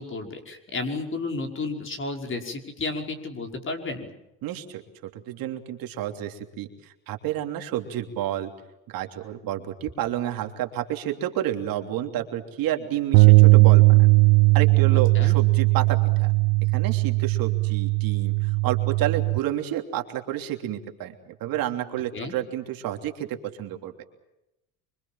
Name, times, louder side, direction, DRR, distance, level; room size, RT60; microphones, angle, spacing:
voice 1, 0.0-4.1 15.1-15.4 22.1-22.3, left 3 dB, 30° left, 4 dB, 5.6 m, -32 dB
voice 2, 4.4-8.5 8.9-14.1 14.5-16.3 16.7-24.0, right 12 dB, 60° right, 4 dB, 3.2 m, -30 dB
sound 1, 13.1-19.4, right 27 dB, 85° right, 1.0 m, -18 dB
26.5 x 24.5 x 7.4 m, 0.93 s
supercardioid pair, 105°, 39 cm